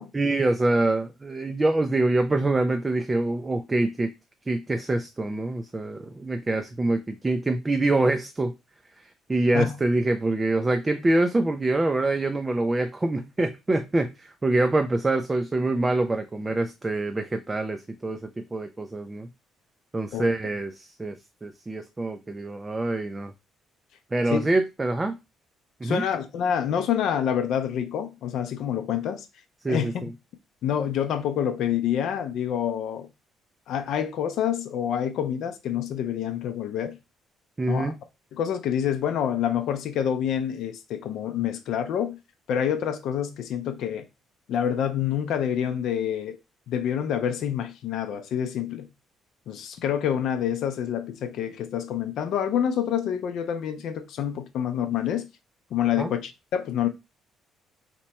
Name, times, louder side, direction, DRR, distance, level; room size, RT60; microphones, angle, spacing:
voice 1, 0.1-4.1 4.5-8.5 9.3-18.2 18.5-19.3 19.9-23.3 24.1-25.2 25.8-26.0 29.6-30.1 37.6-38.0 56.0-56.1, right 2 dB, 20° right, 0.3 m, -25 dB
voice 2, 25.8-29.3 29.7-29.9 30.6-33.1 33.7-37.0 37.7-37.9 38.3-42.2 42.5-44.1 44.5-46.4 46.7-48.9 49.5-55.3 55.7-56.9, left 9 dB, 70° left, 0.5 m, -27 dB
2.9 x 2.2 x 4.1 m
cardioid pair, 120°, 0 cm